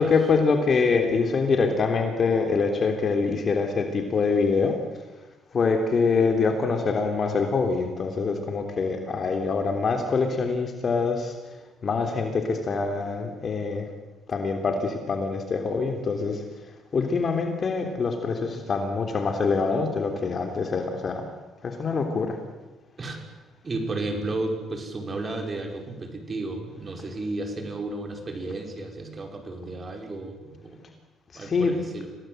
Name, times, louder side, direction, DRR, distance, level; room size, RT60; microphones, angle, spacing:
voice 1, 0.0-4.8 5.5-11.3 11.8-13.9 14.3-16.4 16.9-21.2 21.6-22.4 31.3-31.7, left 4 dB, 45° left, 4 dB, 3.3 m, -24 dB
voice 2, 23.6-30.8 31.3-32.1, right 2 dB, 35° right, 4 dB, 5.5 m, -33 dB
26.5 x 18.0 x 8.0 m, 1.1 s
cardioid pair, 85°, 0 cm